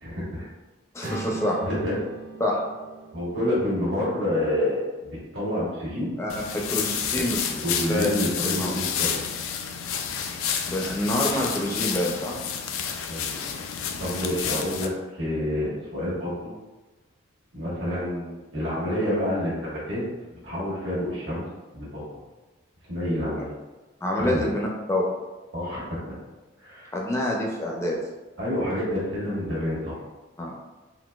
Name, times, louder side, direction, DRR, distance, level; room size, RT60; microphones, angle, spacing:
voice 1, 0.0-0.5 1.0-1.2 1.6-2.0 3.1-6.1 7.1-9.3 13.1-13.4 14.0-16.5 17.5-20.0 20.3-21.4 21.7-22.0 22.9-23.6 24.2-24.5 25.5-26.0 26.6-26.9 28.4-30.0, left 1 dB, 70° right, -8 dB, 1.3 m, -28 dB
voice 2, 0.9-1.6 2.4-2.7 6.2-7.4 7.9-8.7 10.7-12.4 24.0-25.1 26.9-28.0 30.4-30.5, left 1 dB, 15° left, -2 dB, 0.4 m, -27 dB
sound 1, 1.0-5.0, right 4 dB, 40° right, 0.5 m, -40 dB
sound 2, 6.3-14.9, left 7 dB, 85° left, 0.4 m, -30 dB
3.9 x 2.5 x 2.3 m, 1.2 s
head